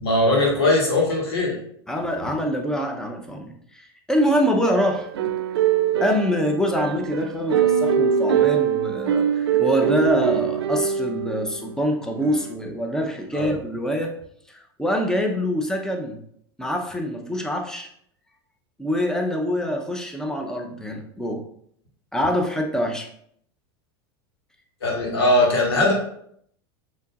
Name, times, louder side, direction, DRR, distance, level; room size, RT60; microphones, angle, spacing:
voice 1, 0.0-1.5 13.3-13.5 24.8-25.9, left 2 dB, 80° left, -2 dB, 1.7 m, -20 dB
voice 2, 1.9-5.1 6.0-14.1 14.5-16.2 16.6-17.9 18.8-21.4 22.1-23.1, equal, 5° left, 2 dB, 0.8 m, -25 dB
sound 1, 4.7-11.6 12.2-12.5, right 8 dB, 85° right, 0.4 m, -23 dB
6.6 x 3.0 x 2.5 m, 0.68 s
hypercardioid pair, 95°, 13 cm